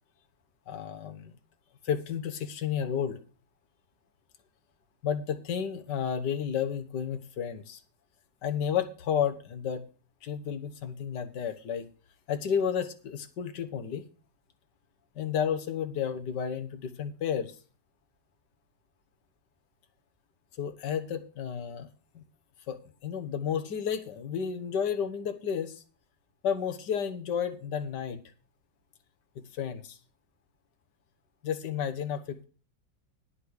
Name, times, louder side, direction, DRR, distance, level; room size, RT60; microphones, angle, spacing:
voice 1, 0.7-1.3 1.8-3.2 5.0-7.8 8.4-9.8 10.2-11.9 12.3-14.0 15.2-17.5 20.6-21.9 22.2-22.3 22.7-22.8 23.0-25.8 26.4-28.2 29.5-30.0 31.4-32.4, left 8 dB, 65° left, 8 dB, 1.8 m, -32 dB
9.8 x 8.5 x 6.5 m, 0.36 s
omnidirectional pair, 2.1 m